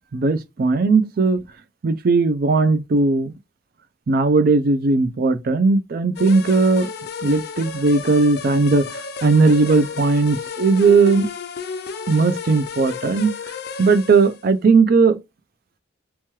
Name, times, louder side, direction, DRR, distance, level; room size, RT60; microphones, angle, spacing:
voice 1, 0.1-1.4 1.8-3.3 4.1-6.9 7.2-11.3 12.1-13.3 13.8-15.2, right 4 dB, 45° right, 0.4 m, -17 dB
sound 1, 6.2-14.4, left 5 dB, 50° left, 0.3 m, -32 dB
3.0 x 2.3 x 2.9 m
head